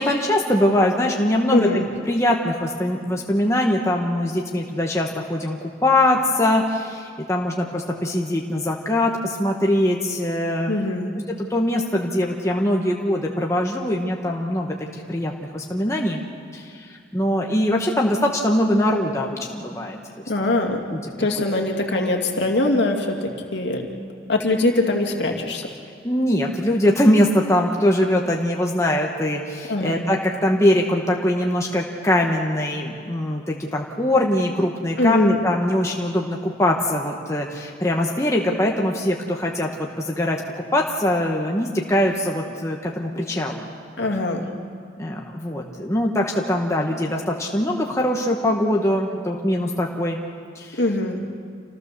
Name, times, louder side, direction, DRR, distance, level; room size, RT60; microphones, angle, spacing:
voice 1, 0.0-1.7 2.1-10.7 11.5-16.2 16.5-20.0 20.9-21.3 26.0-39.7 40.0-40.4 40.7-43.7 45.0-50.2 50.5-50.8, left 1 dB, 15° left, 0 dB, 1.3 m, -22 dB
voice 2, 1.5-1.9 10.7-11.1 20.3-20.8 21.2-23.8 24.3-25.6 29.7-30.0 35.0-35.4 44.0-44.5 50.8-51.2, left 2 dB, 65° left, 1 dB, 2.4 m, -22 dB
27.5 x 16.0 x 6.9 m, 2.2 s
head